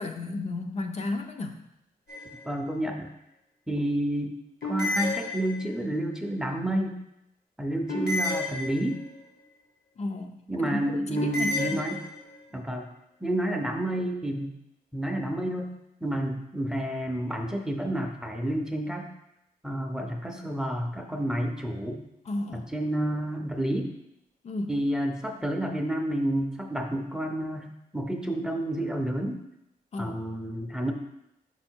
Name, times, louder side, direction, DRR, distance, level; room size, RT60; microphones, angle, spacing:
voice 1, 0.0-1.7 10.0-11.8 22.3-22.7 24.4-24.8 29.9-30.2, left 2 dB, 45° left, 5 dB, 0.4 m, -33 dB
sound 1, 2.1-2.7 4.6-5.9 7.9-9.2 11.2-12.4, left 2 dB, 85° left, 1.3 m, -31 dB
voice 2, 2.4-3.1 3.7-4.3 4.6-7.0 7.6-9.0 10.5-12.0 12.5-12.9 13.2-14.5 14.9-15.7 16.0-19.1 19.6-22.0 22.5-23.9 24.7-29.4 30.0-30.9, right 1 dB, 5° right, 3 dB, 0.5 m, -30 dB
5.3 x 4.3 x 4.4 m, 0.84 s
wide cardioid pair, 140°, 16 cm